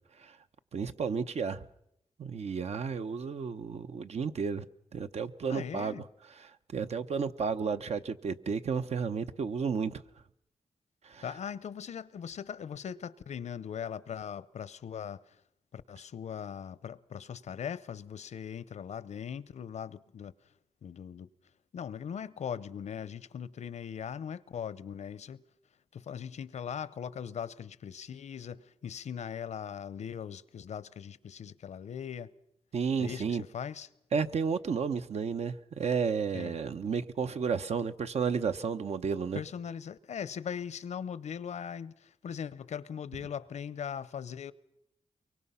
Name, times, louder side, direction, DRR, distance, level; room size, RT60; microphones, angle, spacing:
voice 1, 0.7-1.6 2.2-4.7 4.9-5.9 6.4-10.0 11.0-11.2 32.7-33.4 34.1-39.4, right 6 dB, 70° right, 0.9 m, -32 dB
voice 2, 5.5-6.0 11.2-15.4 15.7-20.3 20.8-21.3 21.7-25.4 25.9-32.3 33.0-33.9 36.3-36.6 39.3-44.5, left 8 dB, 85° left, 0.7 m, -40 dB
23.5 x 23.5 x 5.6 m
wide cardioid pair, 95°, 11 cm